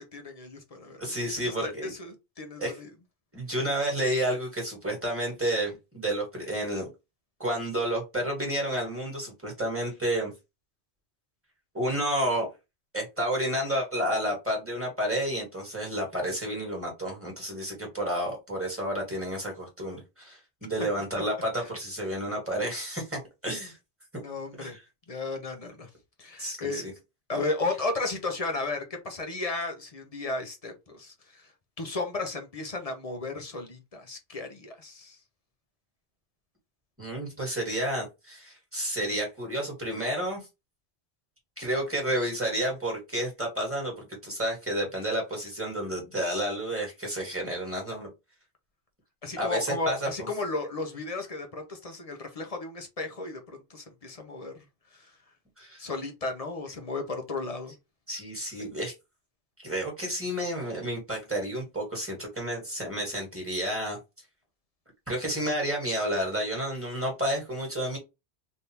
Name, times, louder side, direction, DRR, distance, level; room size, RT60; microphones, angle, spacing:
voice 1, 0.1-2.9 24.2-24.7 25.1-25.9 26.2-26.9 27.3-31.5 31.8-35.2 49.2-54.5 55.8-57.7, left 3 dB, 40° left, 0.7 m, -34 dB
voice 2, 1.0-1.9 2.6-2.8 3.3-6.9 7.4-10.3 11.7-12.5 12.9-23.8 24.1-24.2 24.6-24.8 26.4-26.9 37.0-40.5 41.6-43.9 44.2-48.1 49.4-50.3 55.6-55.8 58.1-58.9 59.6-64.0 65.1-68.0, right 1 dB, 10° right, 1.6 m, -30 dB
3.4 x 2.7 x 2.8 m
omnidirectional pair, 1.1 m